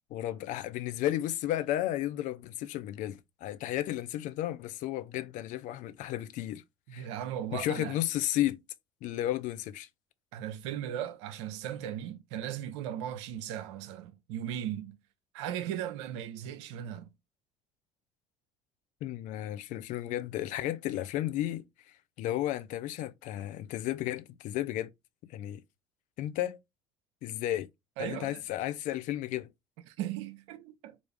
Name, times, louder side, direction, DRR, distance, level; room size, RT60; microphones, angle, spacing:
voice 1, 0.1-6.6 6.9-7.1 7.5-8.6 9.0-9.9 19.0-21.7 22.2-24.9 25.3-25.6 26.2-26.6 27.2-27.7 28.0-29.5, left 13 dB, 55° left, 0.4 m, -33 dB
voice 2, 6.9-8.0 10.3-15.0 15.3-17.1 28.0-28.4 29.9-31.0, right 10 dB, 70° right, 0.5 m, -37 dB
3.5 x 2.4 x 3.3 m
hypercardioid pair, 60°, 15 cm